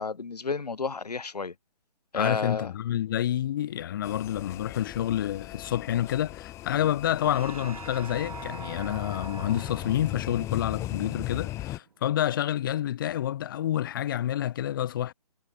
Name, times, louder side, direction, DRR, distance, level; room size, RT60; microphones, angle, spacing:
voice 1, 0.0-1.5 2.1-2.7, left 4 dB, 85° left, 7.3 m, -31 dB
voice 2, 2.1-15.1, left 11 dB, 35° left, 1.8 m, -28 dB
sound 1, 4.0-11.8, left 15 dB, 15° left, 5.1 m, -38 dB
sound 2, 7.2-12.0, right 6 dB, 65° right, 6.6 m, -45 dB
hypercardioid pair, 165°, 20 cm